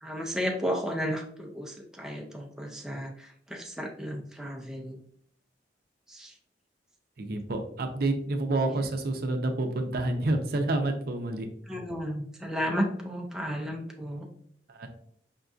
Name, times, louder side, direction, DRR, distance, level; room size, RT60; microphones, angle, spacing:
voice 1, 0.0-5.0 6.1-6.3 11.7-14.3, equal, 5° right, 0 dB, 0.4 m, -33 dB
voice 2, 7.2-11.5 14.7-14.9, right 2 dB, 55° right, 5 dB, 0.5 m, -28 dB
5.1 x 2.5 x 2.3 m, 0.63 s
head